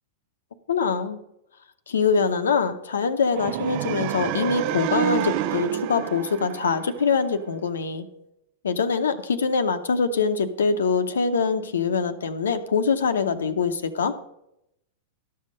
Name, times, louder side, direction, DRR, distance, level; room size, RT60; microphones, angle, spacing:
voice 1, 0.7-1.2 1.9-8.1 8.6-14.1, left 5 dB, 90° left, 8 dB, 0.8 m, -24 dB
sound 1, 3.3-7.4, right 13 dB, 50° right, 0.4 m, -29 dB
11.5 x 5.7 x 6.4 m, 0.82 s
hypercardioid pair, 115°, 0 cm